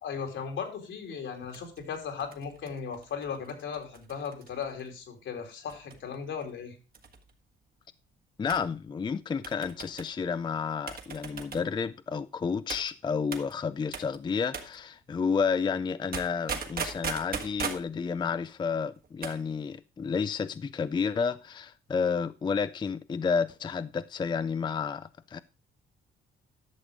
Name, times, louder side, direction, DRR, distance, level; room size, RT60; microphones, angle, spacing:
voice 1, 0.0-6.8, left 6 dB, 75° left, 2.8 m, -37 dB
sound 1, 1.5-4.9 5.7-6.1 6.4-6.5 6.9-7.3 8.5-8.7 9.4-10.1 10.9-11.7 12.7-12.9 13.3-13.5 13.9-14.2 14.5-14.8 16.1-17.9 19.0-19.4 19.7-19.8, right 5 dB, 50° right, 1.8 m, -38 dB
voice 2, 8.4-25.4, left 5 dB, 25° left, 0.4 m, -31 dB
11.5 x 6.5 x 4.9 m
cardioid pair, 90°, 20 cm